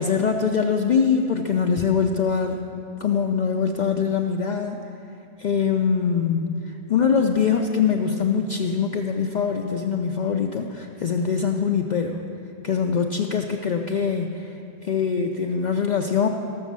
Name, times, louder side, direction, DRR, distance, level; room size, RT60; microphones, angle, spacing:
voice 1, 0.0-2.7 3.0-4.8 5.4-12.2 12.6-14.5 14.8-16.3, left 6 dB, 55° left, 3 dB, 0.6 m, -23 dB
14.0 x 6.3 x 7.3 m, 2.9 s
omnidirectional pair, 1.0 m